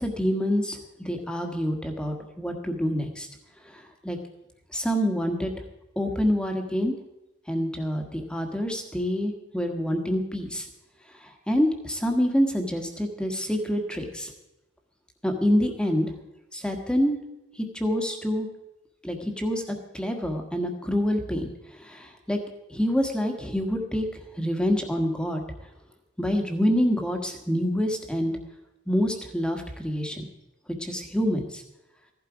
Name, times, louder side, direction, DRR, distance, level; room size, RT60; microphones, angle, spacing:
voice 1, 0.0-3.3 3.6-4.2 4.7-5.5 5.9-6.9 7.5-10.7 11.2-14.3 15.2-16.1 16.5-17.2 17.6-18.5 19.0-22.4 22.7-25.4 26.2-28.4 28.9-30.2 30.8-31.6, equal, 5° left, 3 dB, 1.5 m, -27 dB
16.0 x 11.5 x 5.0 m, 0.96 s
head